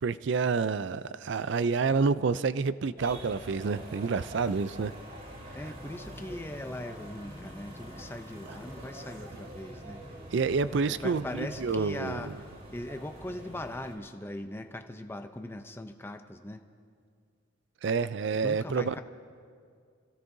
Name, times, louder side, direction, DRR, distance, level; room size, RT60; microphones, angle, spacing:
voice 1, 0.0-4.9 10.3-12.2 17.8-19.0, right 4 dB, 60° right, 15 dB, 0.4 m, -28 dB
sound 1, 3.0-14.0, right 1 dB, 45° right, 2.5 m, -45 dB
voice 2, 5.5-10.0 10.8-12.3 12.7-16.6 18.4-19.0, left 1 dB, 10° left, 7 dB, 0.5 m, -40 dB
27.5 x 16.0 x 2.7 m, 2.2 s
head